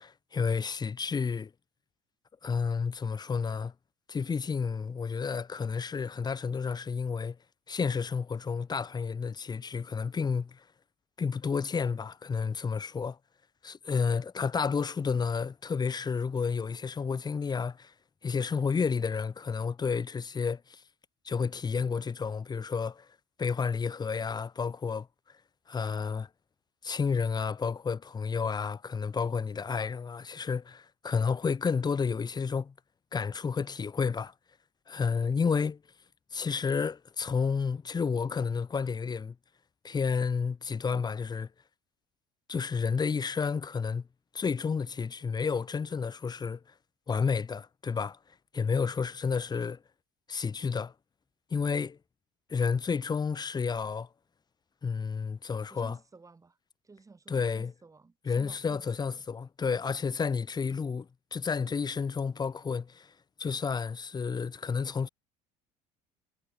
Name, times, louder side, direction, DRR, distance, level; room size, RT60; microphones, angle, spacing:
voice 1, 0.0-1.5 2.4-3.7 4.1-7.4 7.7-10.6 11.2-13.2 13.6-17.9 18.2-20.8 21.2-23.1 23.4-25.1 25.7-26.3 26.8-32.7 33.1-34.3 34.9-35.8 36.3-39.3 39.8-41.5 42.5-44.1 44.3-46.6 47.1-48.2 48.5-49.8 50.3-50.9 51.5-52.0 52.5-54.1 54.8-56.0 57.3-57.7 58.2-63.1 63.4-65.1, left 5 dB, 25° left, 1.4 m, -31 dB
voice 2, 55.7-56.6 56.8-59.3, right 4 dB, 20° right, 7.2 m, -54 dB
supercardioid pair, 100°, 17 cm